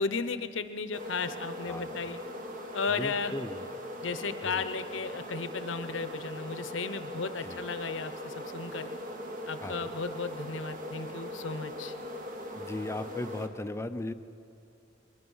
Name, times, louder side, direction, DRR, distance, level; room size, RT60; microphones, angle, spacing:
voice 1, 0.0-2.2 2.7-3.3 4.0-8.9 9.5-11.9, left 4 dB, 70° left, 11 dB, 0.8 m, -34 dB
sound 1, 0.9-13.5, equal, 45° right, 1.6 m, -40 dB
voice 2, 1.7-2.0 2.9-3.7 4.4-4.6 7.4-7.6 9.6-9.9 12.5-14.1, left 1 dB, 15° left, 11 dB, 0.5 m, -37 dB
22.5 x 20.5 x 5.6 m, 2.5 s
head